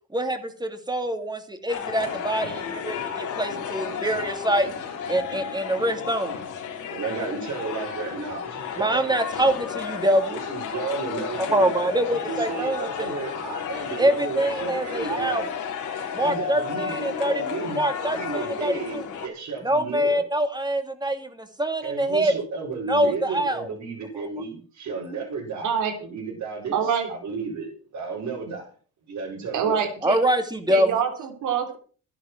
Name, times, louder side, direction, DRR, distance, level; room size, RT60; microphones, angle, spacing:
voice 1, 0.1-4.7 5.1-6.4 8.8-10.4 11.4-13.1 14.0-15.6 16.1-17.3 17.8-19.0 19.6-22.3 22.9-23.7 24.1-24.3 30.0-30.9, right 1 dB, 15° right, 2.9 m, -25 dB
sound 1, 1.7-19.3, left 7 dB, 80° left, 3.7 m, -33 dB
voice 2, 6.9-9.3 10.3-15.5 16.2-20.2 21.8-28.7 29.1-29.8, right 4 dB, 70° right, 5.3 m, -33 dB
voice 3, 26.7-27.1 29.5-30.2 30.7-31.8, right 7 dB, 85° right, 3.5 m, -25 dB
13.5 x 10.5 x 6.1 m
cardioid pair, 90°, 30 cm